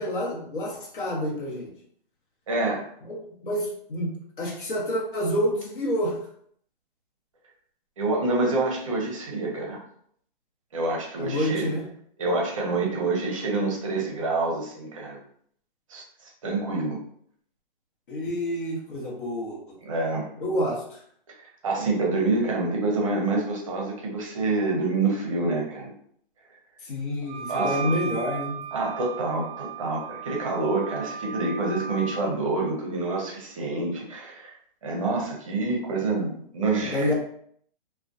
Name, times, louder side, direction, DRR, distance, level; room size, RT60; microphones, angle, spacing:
voice 1, 0.0-1.7 3.0-6.2 11.2-11.9 18.1-19.8 20.4-21.0 26.8-28.6 36.9-37.1, equal, 60° left, -2 dB, 0.9 m, -28 dB
voice 2, 2.5-2.9 8.0-9.8 10.7-11.7 12.2-15.2 15.9-17.0 19.9-20.3 21.3-21.4 21.6-25.9 27.5-27.9 28.7-34.5 34.8-37.1, right 3 dB, 35° right, -1 dB, 0.6 m, -27 dB
Wind instrument woodwind instrument, 27.3-32.2, right 6 dB, 20° left, 0.3 m, -35 dB
2.3 x 2.2 x 2.5 m, 0.63 s
hypercardioid pair, 160°, 29 cm